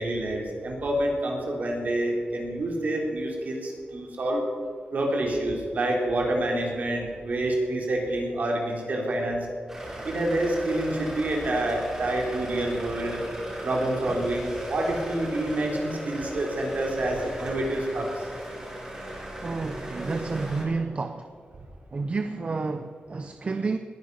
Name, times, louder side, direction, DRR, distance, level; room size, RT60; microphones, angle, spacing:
voice 1, 0.0-4.4 4.9-9.5 10.0-13.2 13.6-18.2, right 1 dB, 55° right, 0 dB, 3.7 m, -27 dB
sound 1, 9.7-20.6, equal, 15° right, 5.1 m, -37 dB
voice 2, 19.4-21.3 21.9-23.8, right 4 dB, 40° right, 8 dB, 0.7 m, -30 dB
20.0 x 10.5 x 5.6 m, 2.2 s
wide cardioid pair, 135°, 3 cm